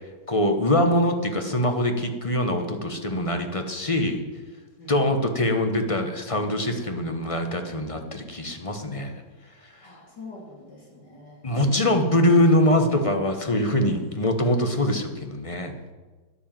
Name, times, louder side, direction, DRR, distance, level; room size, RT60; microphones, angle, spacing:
voice 1, 0.3-4.2 4.9-9.1 11.4-15.7, left 1 dB, 20° left, 5 dB, 1.0 m, -23 dB
voice 2, 4.8-5.4 9.8-11.9, left 3 dB, 65° left, -2 dB, 4.2 m, -44 dB
12.0 x 9.9 x 7.5 m, 1.3 s
omnidirectional pair, 2.0 m